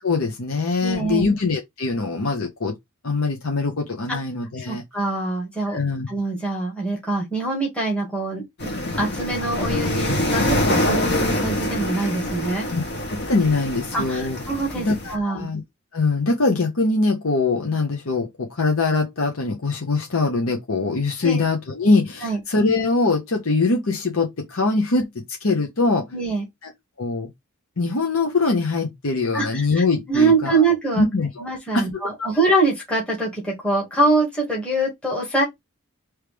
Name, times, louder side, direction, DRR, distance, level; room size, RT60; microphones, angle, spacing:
voice 1, 0.0-2.8 3.0-4.8 5.7-6.1 12.7-12.8 13.1-14.4 14.7-15.6 15.9-26.1 26.6-26.7 27.0-27.3 27.8-30.6 31.0-31.4 31.7-32.3, left 3 dB, 70° left, 1.0 m, -22 dB
voice 2, 0.8-1.3 4.1-4.2 4.6-5.8 6.1-8.4 9.0-12.7 13.9-15.5 21.2-21.4 22.2-22.4 26.1-26.5 29.3-31.1 31.4-35.4, right 2 dB, 5° left, 1.9 m, -24 dB
sound 1, 8.6-15.1, left 1 dB, 50° left, 1.8 m, -25 dB
4.8 x 3.2 x 3.4 m
head